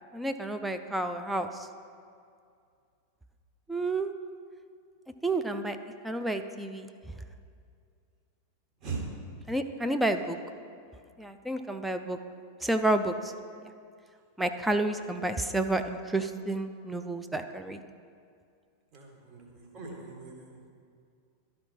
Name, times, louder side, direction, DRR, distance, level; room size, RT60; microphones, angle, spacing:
voice 1, 0.1-1.5 3.7-4.1 5.2-5.8 6.0-6.9 9.5-10.4 11.2-12.2 12.6-13.3 14.4-17.8, right 2 dB, 5° right, 7 dB, 0.4 m, -30 dB
voice 2, 18.9-20.6, right 4 dB, 35° right, 0 dB, 1.7 m, -40 dB
12.5 x 4.3 x 4.5 m, 2.3 s
figure-of-eight pair, 90°, 0 cm